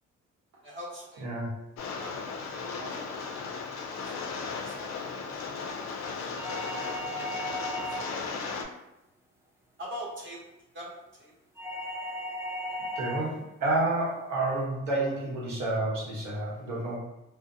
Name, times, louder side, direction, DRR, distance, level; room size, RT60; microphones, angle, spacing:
voice 1, 0.6-1.2 1.9-2.1 2.6-3.0 4.6-4.9 7.5-8.2 9.8-10.5 10.7-11.3 14.2-14.3, equal, 40° right, -4 dB, 0.8 m, -42 dB
Rain, 1.8-8.6, left 4 dB, 65° left, 0.4 m, -36 dB
sound 1, 6.4-8.3 11.6-13.4, equal, 10° right, 0.4 m, -36 dB
voice 2, 13.0-17.0, right 2 dB, 90° right, -5 dB, 1.0 m, -29 dB
2.5 x 2.0 x 2.6 m, 0.92 s
cardioid pair, 90°, 30 cm